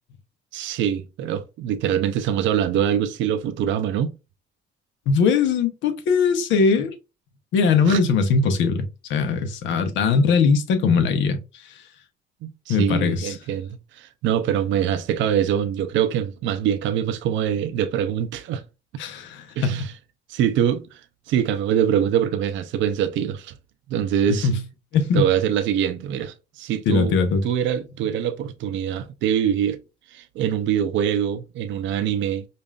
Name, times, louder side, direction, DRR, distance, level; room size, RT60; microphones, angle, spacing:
voice 1, 0.5-4.1 7.9-8.0 12.4-18.6 19.6-19.9 20.3-21.0 21.3-23.5 23.9-24.5 25.1-27.1 27.4-29.8 30.1-32.5, right 9 dB, 85° right, 0.6 m, -24 dB
voice 2, 5.1-6.9 7.5-11.4 11.6-11.7 12.7-13.4 19.0-19.8 24.4-24.6 24.9-25.3 26.9-27.4, left 5 dB, 85° left, 0.9 m, -20 dB
5.3 x 2.5 x 2.4 m
cardioid pair, 105°, 19 cm